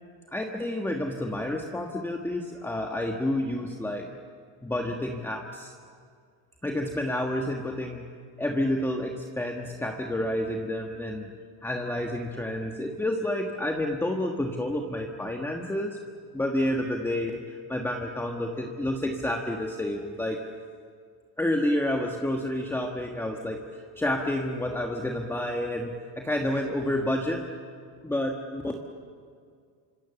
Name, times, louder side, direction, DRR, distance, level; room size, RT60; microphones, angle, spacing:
voice 1, 0.3-4.1 4.6-5.7 6.6-8.0 8.4-11.3 11.6-16.0 16.3-20.4 21.4-27.4 28.0-28.7, left 1 dB, 5° left, 1 dB, 1.5 m, -29 dB
27.5 x 26.0 x 7.2 m, 2.1 s
cardioid pair, 145°, 42 cm